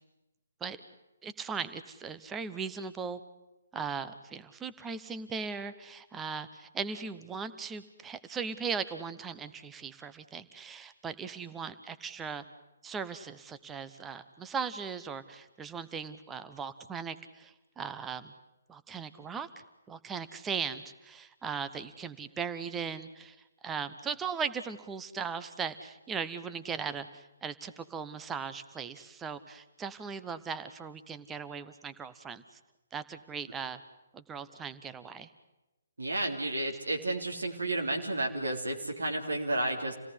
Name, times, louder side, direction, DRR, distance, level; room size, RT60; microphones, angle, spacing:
voice 1, 1.2-3.2 3.7-12.4 12.8-18.3 18.7-19.5 19.9-23.4 23.6-32.4 32.9-33.8 34.1-35.3, right 6 dB, 10° right, 12 dB, 1.0 m, -38 dB
voice 2, 36.0-40.0, right 2 dB, 70° right, 2 dB, 3.4 m, -32 dB
28.0 x 17.5 x 9.8 m, 0.99 s
figure-of-eight pair, 135°, 0 cm